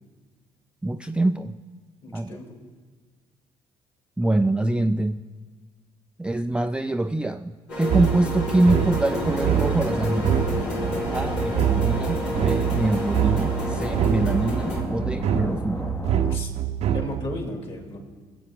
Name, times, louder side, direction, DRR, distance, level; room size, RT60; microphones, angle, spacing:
voice 1, 0.8-1.6 2.1-2.4 4.2-5.2 6.2-10.4 11.1-15.9, right 2 dB, 5° right, 7 dB, 0.4 m, -24 dB
voice 2, 2.0-2.5 10.9-11.3 16.3-16.5 16.9-18.0, left 2 dB, 45° left, 1 dB, 3.3 m, -35 dB
sound 1, 7.7-14.8, equal, 85° left, 4.0 m, -30 dB
sound 2, 7.9-17.3, right 10 dB, 50° right, 0.7 m, -26 dB
sound 3, 9.1-16.4, left 2 dB, 15° left, 0.8 m, -33 dB
22.5 x 7.9 x 3.8 m, 1.4 s
hypercardioid pair, 60°, 14 cm